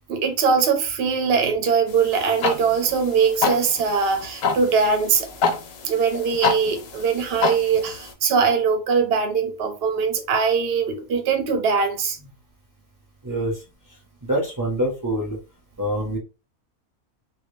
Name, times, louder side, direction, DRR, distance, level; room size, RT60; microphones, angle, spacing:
voice 1, 0.1-5.3 5.8-12.2, right 5 dB, 55° right, 0.8 m, -21 dB
sound 1, 1.9-8.1, left 5 dB, 75° left, 1.0 m, -28 dB
voice 2, 13.2-13.6 14.2-15.4 15.8-16.2, right 1 dB, 20° right, 0.6 m, -25 dB
2.3 x 2.2 x 3.1 m
omnidirectional pair, 1.4 m